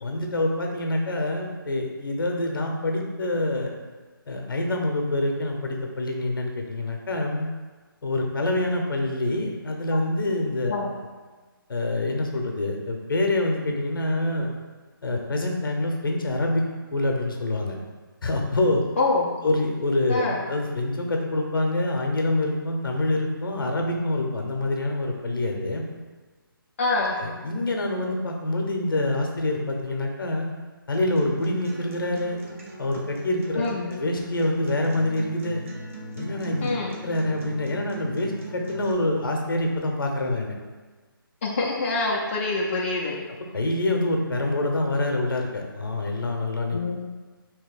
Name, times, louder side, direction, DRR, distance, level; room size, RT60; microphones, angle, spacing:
voice 1, 0.0-3.7 4.3-7.5 8.0-10.7 11.7-14.5 15.0-16.6 16.9-17.8 18.2-18.8 19.4-25.8 27.2-30.5 30.9-32.4 32.8-35.6 36.2-36.7 37.0-40.5 43.5-47.0, left 2 dB, 65° left, 2 dB, 0.7 m, -26 dB
voice 2, 19.0-19.3 20.1-20.4 26.8-27.2 33.6-33.9 36.6-37.0 41.4-43.2 46.7-47.0, left 3 dB, 35° left, -4 dB, 0.4 m, -25 dB
Acoustic guitar, 30.9-38.9, equal, 35° right, 0.5 m, -40 dB
2.9 x 2.8 x 4.0 m, 1.3 s
hypercardioid pair, 160°, 12 cm